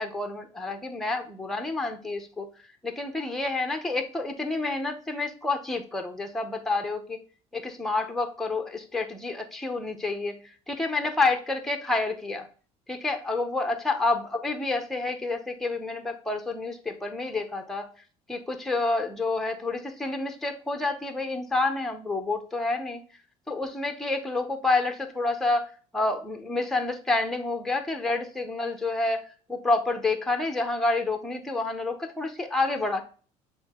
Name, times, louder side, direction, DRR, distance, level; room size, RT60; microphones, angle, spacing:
voice 1, 0.0-2.5 2.8-7.2 7.5-10.4 10.7-12.5 12.9-17.9 18.3-23.0 23.5-33.0, left 3 dB, 5° left, 5 dB, 0.7 m, -29 dB
7.3 x 3.6 x 3.6 m, 0.39 s
cardioid pair, 145°, 13 cm